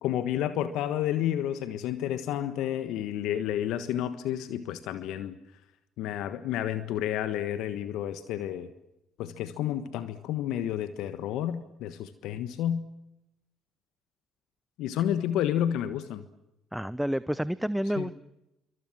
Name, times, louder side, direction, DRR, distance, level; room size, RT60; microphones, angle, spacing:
voice 1, 0.0-5.4 6.0-8.7 9.2-12.8 14.8-16.2 18.0-18.1, left 11 dB, 70° left, 12 dB, 1.4 m, -30 dB
voice 2, 16.7-18.2, equal, ahead, 17 dB, 0.8 m, -29 dB
27.0 x 24.5 x 6.2 m, 0.88 s
hypercardioid pair, 60°, 0 cm